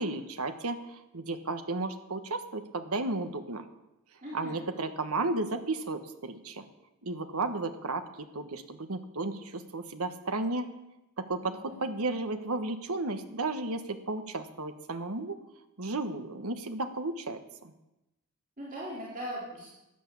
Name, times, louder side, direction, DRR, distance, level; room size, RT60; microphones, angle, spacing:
voice 1, 0.0-3.6 4.3-6.6 7.0-8.0 8.3-10.7 11.2-15.4 15.8-17.7, right 2 dB, 75° right, 9 dB, 1.4 m, -33 dB
voice 2, 4.2-4.6 11.4-11.8 18.6-19.7, equal, 35° right, -5 dB, 3.4 m, -40 dB
13.0 x 10.5 x 8.5 m, 0.95 s
head